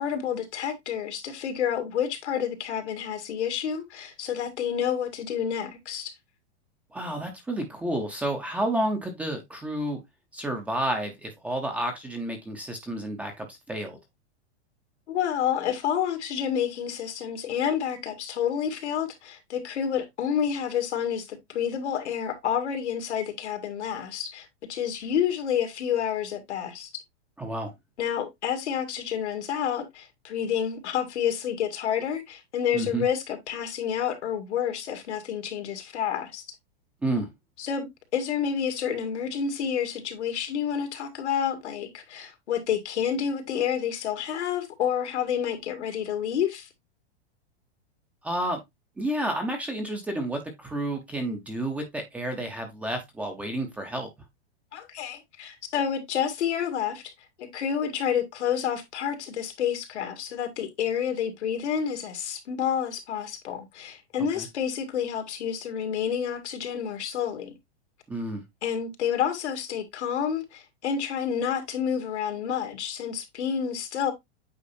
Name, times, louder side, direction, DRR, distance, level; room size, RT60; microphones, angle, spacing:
voice 1, 0.0-6.1 15.1-26.9 28.0-36.4 37.6-37.9 38.1-46.7 54.7-57.0 57.4-67.5 68.6-74.1, left 8 dB, 90° left, 2.1 m, -29 dB
voice 2, 6.9-10.0 10.3-14.0 27.4-27.7 32.7-33.0 37.0-37.3 48.2-48.6 49.0-54.1 64.4-64.5 68.1-68.4, right 1 dB, 5° right, 0.6 m, -30 dB
8.5 x 4.4 x 2.6 m
supercardioid pair, 170°, 33 cm